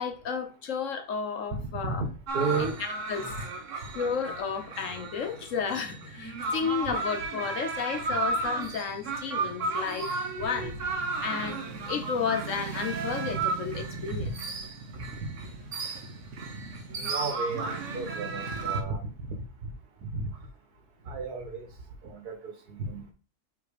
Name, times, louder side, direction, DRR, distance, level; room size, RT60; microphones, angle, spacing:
voice 1, 0.0-2.0 2.6-2.7 3.1-3.3 3.9-10.7 11.2-11.6 11.9-14.3, left 6 dB, 60° left, 6 dB, 1.2 m, -32 dB
voice 2, 1.5-2.1 2.3-2.8 3.2-3.4 14.1-14.3 17.0-19.1 20.0-20.2 21.1-21.7 22.0-23.1, right 4 dB, 80° right, 4 dB, 2.0 m, -33 dB
sound 1, 2.3-18.8, right 3 dB, 55° right, 1.3 m, -34 dB
6.1 x 3.5 x 4.9 m, 0.34 s
omnidirectional pair, 1.6 m